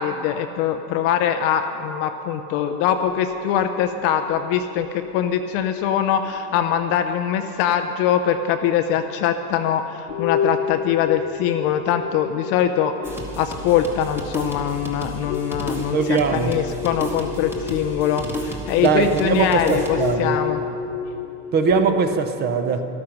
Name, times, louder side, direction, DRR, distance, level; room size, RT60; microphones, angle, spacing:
voice 1, 0.0-12.9 13.4-20.6, left 9 dB, 30° left, 8 dB, 0.4 m, -22 dB
sound 1, 2.9-6.8 7.3-7.4 8.4-8.5 9.0-9.1 9.6-9.8 10.1-22.2, left 7 dB, 60° left, 0.7 m, -31 dB
sound 2, 13.0-20.1, right 1 dB, 5° right, 1.2 m, -33 dB
voice 2, 15.9-16.5 18.8-20.4 21.5-22.9, right 5 dB, 20° right, 8 dB, 0.5 m, -21 dB
13.5 x 13.0 x 5.8 m, 2.8 s
supercardioid pair, 140°, 47 cm